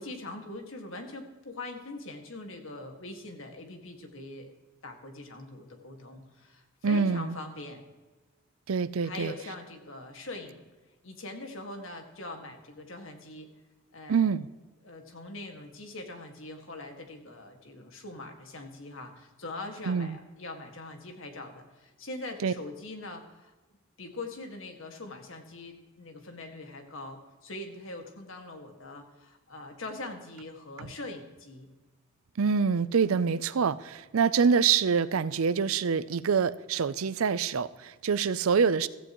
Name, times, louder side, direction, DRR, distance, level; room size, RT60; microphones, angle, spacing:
voice 1, 0.0-4.5 4.8-7.8 9.0-10.6 11.0-13.5 13.9-14.3 14.8-23.5 24.0-31.7, left 2 dB, 65° left, 4 dB, 1.9 m, -42 dB
voice 2, 6.8-7.4 8.7-9.3 14.1-14.5 19.9-20.2 22.4-22.5 30.8-30.9 32.4-38.9, right 6 dB, 75° right, 16 dB, 0.5 m, -26 dB
16.0 x 14.5 x 3.1 m, 1.2 s
head